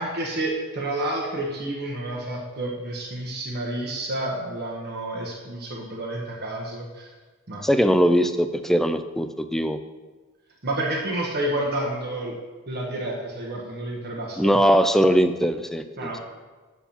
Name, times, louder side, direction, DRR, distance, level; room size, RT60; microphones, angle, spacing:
voice 1, 0.0-7.1 7.5-7.6 10.6-12.4 12.7-14.6 16.0-16.3, right 1 dB, 50° right, -2 dB, 1.2 m, -30 dB
voice 2, 7.6-9.8 14.4-15.8, equal, ahead, 9 dB, 0.4 m, -20 dB
7.3 x 4.5 x 7.0 m, 1.3 s
head